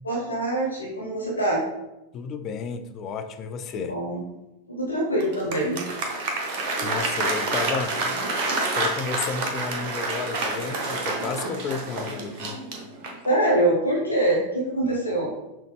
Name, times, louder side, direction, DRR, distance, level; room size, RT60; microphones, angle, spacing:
voice 1, 0.0-1.6 3.7-4.2 4.7-5.8 13.2-15.3, right 1 dB, 80° left, 0.7 m, -24 dB
voice 2, 2.1-3.9 6.8-8.0 8.7-12.6, left 5 dB, 30° left, 0.3 m, -32 dB
Applause, 5.2-13.3, right 2 dB, 45° right, 0.8 m, -28 dB
5.6 x 2.0 x 3.4 m
figure-of-eight pair, 90°, 0 cm